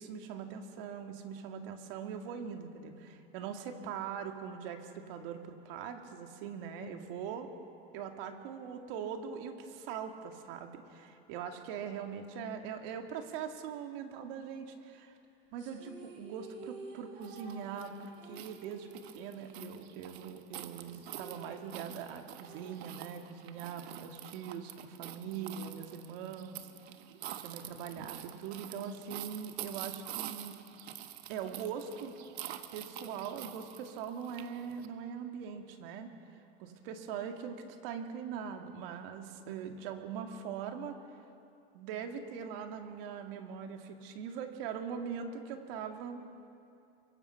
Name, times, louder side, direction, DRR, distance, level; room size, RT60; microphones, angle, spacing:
voice 1, 0.0-7.5 7.9-15.2 15.5-26.7 27.4-30.6 31.3-32.1 32.7-41.0 41.7-46.2, right 7 dB, 60° right, 4 dB, 2.3 m, -42 dB
sound 1, 15.6-20.2 20.5-20.6 20.9-23.6, right 3 dB, 35° right, 5.2 m, -52 dB
sound 2, 17.2-34.9, right 12 dB, 80° right, 1.4 m, -47 dB
25.0 x 22.5 x 5.8 m, 2.6 s
supercardioid pair, 140°, 31 cm